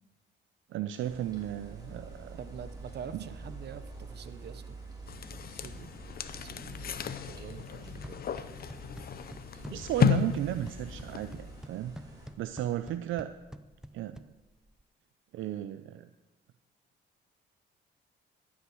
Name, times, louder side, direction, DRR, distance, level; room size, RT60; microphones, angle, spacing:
voice 1, 0.7-2.4 3.1-3.3 9.7-12.0 12.4-13.3 13.9-14.2 15.3-16.1, right 12 dB, 80° right, 11 dB, 0.5 m, -34 dB
sound 1, 1.0-12.3, right 2 dB, 20° right, 3.7 m, -48 dB
voice 2, 2.4-4.8 5.5-5.9 6.3-8.2, right 7 dB, 60° right, 12 dB, 0.9 m, -46 dB
sound 2, 5.1-11.7, left 8 dB, 50° left, 0.7 m, -33 dB
sound 3, 7.8-14.8, equal, 5° right, 0.5 m, -49 dB
14.0 x 6.0 x 7.8 m, 1.2 s
cardioid pair, 90°, 20 cm